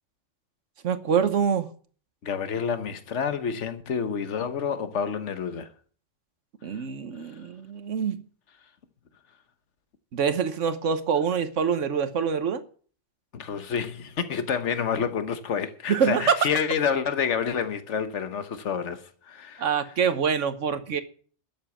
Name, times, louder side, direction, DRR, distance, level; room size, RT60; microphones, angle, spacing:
voice 1, 0.8-1.7 6.6-8.2 10.1-12.6 15.9-16.4 19.6-21.0, right 7 dB, 85° right, 1.4 m, -25 dB
voice 2, 2.2-5.7 13.3-19.6, left 7 dB, 75° left, 1.4 m, -28 dB
12.5 x 7.7 x 7.2 m
omnidirectional pair, 1.2 m